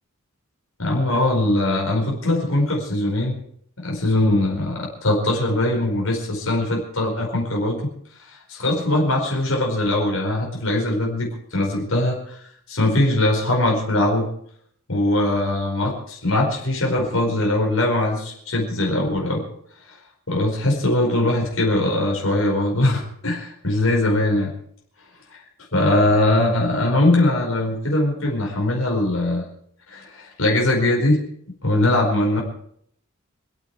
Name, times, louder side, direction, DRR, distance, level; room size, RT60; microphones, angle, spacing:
voice 1, 0.8-3.4 3.8-7.9 8.3-12.2 12.7-14.3 14.9-19.4 20.3-24.5 25.3-25.4 25.7-29.4 29.9-31.2 31.6-32.4, left 1 dB, 85° left, -1 dB, 4.9 m, -21 dB
26.5 x 9.2 x 4.8 m, 0.65 s
head